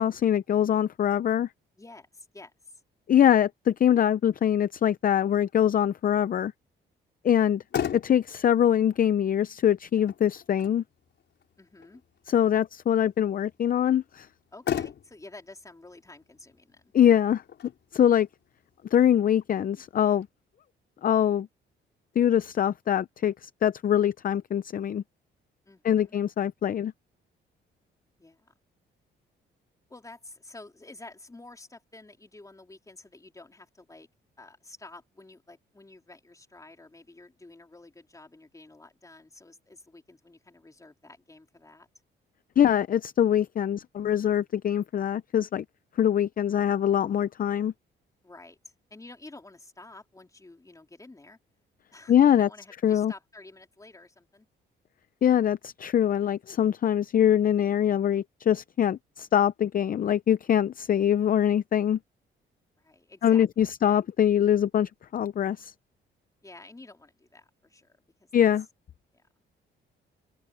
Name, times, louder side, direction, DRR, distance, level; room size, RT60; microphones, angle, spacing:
voice 1, 0.0-1.5 3.1-6.5 7.2-7.6 7.9-10.8 12.3-14.3 16.9-17.4 17.9-18.3 18.9-20.3 21.0-21.5 22.2-25.0 25.8-26.9 42.6-45.6 46.0-47.7 52.1-52.5 52.8-53.1 55.2-62.0 63.2-65.7 68.3-68.6, left 10 dB, 45° left, 0.6 m, -23 dB
voice 2, 1.8-2.8 11.6-12.0 14.5-16.9 25.6-26.2 28.2-28.5 29.9-34.1 34.4-41.9 48.2-48.6 48.9-51.4 51.9-54.5 62.8-63.7 66.4-68.5 69.1-69.2, left 2 dB, 15° left, 3.9 m, -50 dB
Motor vehicle (road), 7.5-20.3, left 9 dB, 60° left, 4.9 m, -39 dB
open air
cardioid pair, 90°, 20 cm